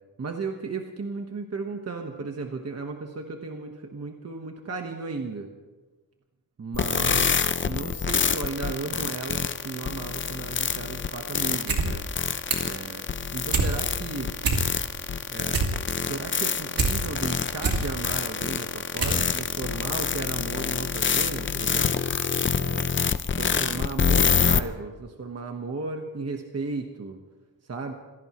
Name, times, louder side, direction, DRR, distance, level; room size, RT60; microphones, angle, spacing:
voice 1, 0.2-5.5 6.6-12.3 12.6-13.0 13.3-14.3 15.3-15.6 16.0-21.9 22.5-23.0 23.4-27.2 27.7-27.9, right 4 dB, 40° right, 3 dB, 1.4 m, -35 dB
sound 1, 6.7-24.6, left 6 dB, 30° left, 0.6 m, -26 dB
sound 2, 11.7-11.9 12.1-12.8 13.1-13.7 14.1-14.2 14.4-15.0 15.3-16.9 17.3-17.9 18.4-18.5 19.0-19.2 19.5-19.6, right 4 dB, 65° right, 2.4 m, -25 dB
26.5 x 17.0 x 3.2 m, 1.2 s
wide cardioid pair, 150°, 37 cm